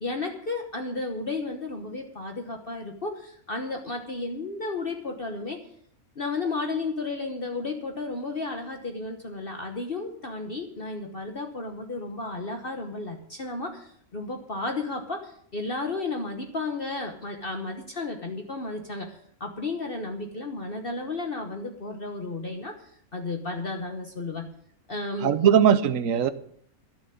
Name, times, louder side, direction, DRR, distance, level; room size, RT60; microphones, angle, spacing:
voice 1, 0.0-5.6 6.2-22.7 23.1-24.5 24.9-25.3, left 3 dB, 40° left, 4 dB, 1.4 m, -33 dB
voice 2, 25.2-26.3, right 8 dB, 65° right, 11 dB, 1.2 m, -20 dB
12.0 x 7.3 x 9.3 m, 0.62 s
omnidirectional pair, 1.5 m